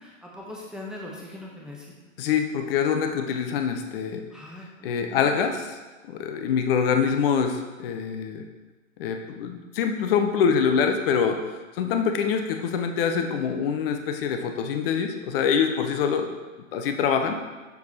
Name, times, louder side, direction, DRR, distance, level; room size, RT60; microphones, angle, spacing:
voice 1, 0.0-1.9 4.3-5.5, left 1 dB, ahead, -4 dB, 0.8 m, -41 dB
voice 2, 2.2-4.2 4.8-5.8 6.0-8.4 9.0-11.4 11.8-16.3 16.7-17.4, left 6 dB, 45° left, 5 dB, 0.7 m, -25 dB
7.0 x 4.7 x 4.0 m, 1.2 s
hypercardioid pair, 120°, 41 cm